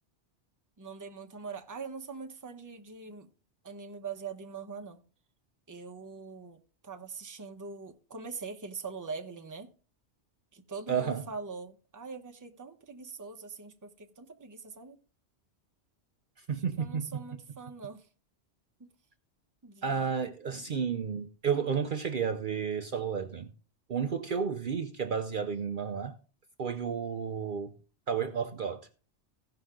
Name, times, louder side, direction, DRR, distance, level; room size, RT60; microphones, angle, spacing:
voice 1, 0.8-3.3 3.6-5.0 5.7-9.7 10.5-15.0 16.5-18.1 18.8-18.9 19.6-20.2, right 5 dB, 20° right, 0.7 m, -43 dB
voice 2, 10.9-11.2 16.5-17.2 19.8-23.5 23.9-26.1 26.6-27.7 28.1-28.9, right 6 dB, 55° right, 0.7 m, -32 dB
16.0 x 5.7 x 3.7 m
omnidirectional pair, 1.2 m